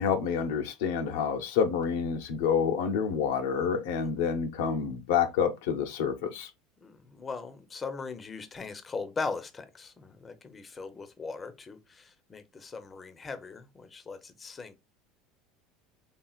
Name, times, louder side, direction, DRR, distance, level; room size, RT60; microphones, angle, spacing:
voice 1, 0.0-6.5, left 7 dB, 90° left, 0.8 m, -28 dB
voice 2, 6.8-14.8, left 4 dB, 20° left, 0.6 m, -39 dB
4.2 x 3.4 x 2.3 m
supercardioid pair, 135°, 0 cm